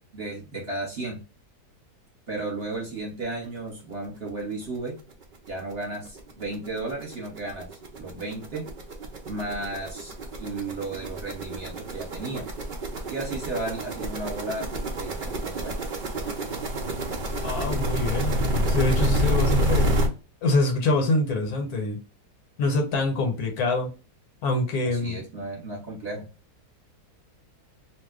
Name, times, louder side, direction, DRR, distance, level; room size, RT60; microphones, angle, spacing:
voice 1, 0.1-1.2 2.3-5.0 5.5-7.7 8.0-8.6 9.2-10.1 10.4-12.4 13.1-14.7 14.9-15.7 24.9-26.3, right 2 dB, 40° right, -2 dB, 1.2 m, -34 dB
sound 1, 4.6-4.7 5.1-5.2 5.5-20.1, right 1 dB, 65° right, 0.4 m, -28 dB
voice 2, 17.4-20.0 20.4-22.0 22.6-23.9 24.4-25.2, left 2 dB, 70° left, 3 dB, 1.3 m, -25 dB
2.7 x 2.2 x 3.5 m, 0.33 s
omnidirectional pair, 1.7 m